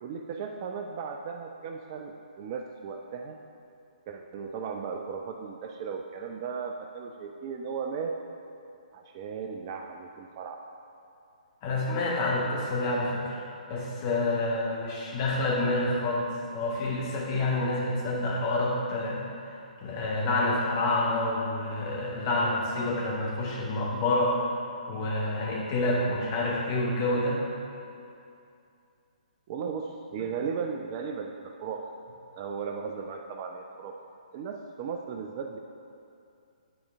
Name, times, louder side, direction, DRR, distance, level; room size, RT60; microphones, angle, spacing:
voice 1, 0.0-3.4 4.1-8.1 8.9-10.6 29.5-31.8 32.3-33.9 34.3-35.6, right 6 dB, 30° right, 3 dB, 0.3 m, -36 dB
voice 2, 11.6-13.4 13.7-24.5 24.9-27.4, left 2 dB, 30° left, -4 dB, 1.3 m, -28 dB
9.6 x 5.0 x 3.4 m, 2.5 s
figure-of-eight pair, 130°, 4 cm